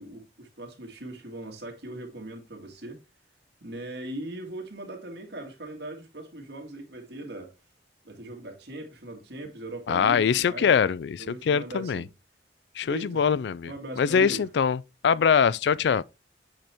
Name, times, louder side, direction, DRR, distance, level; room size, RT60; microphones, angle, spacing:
voice 1, 0.0-3.0 3.6-7.6 8.0-10.7 11.2-12.1 12.9-13.2 13.6-14.5, right 1 dB, 65° right, 2.0 m, -39 dB
voice 2, 9.9-12.0 12.8-16.0, left 6 dB, 70° left, 0.3 m, -23 dB
7.8 x 4.4 x 3.4 m
head